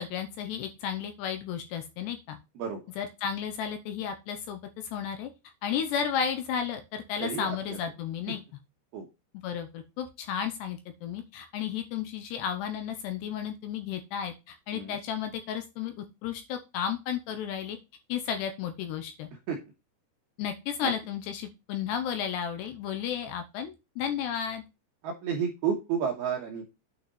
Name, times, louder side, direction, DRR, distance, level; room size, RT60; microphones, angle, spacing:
voice 1, 0.0-2.4 2.9-5.3 5.6-8.4 9.4-17.8 18.1-19.3 20.4-24.6, left 8 dB, 80° left, 7 dB, 2.5 m, -33 dB
voice 2, 25.0-26.7, right 7 dB, 70° right, 1 dB, 2.5 m, -31 dB
9.5 x 5.7 x 4.2 m, 0.27 s
omnidirectional pair, 5.9 m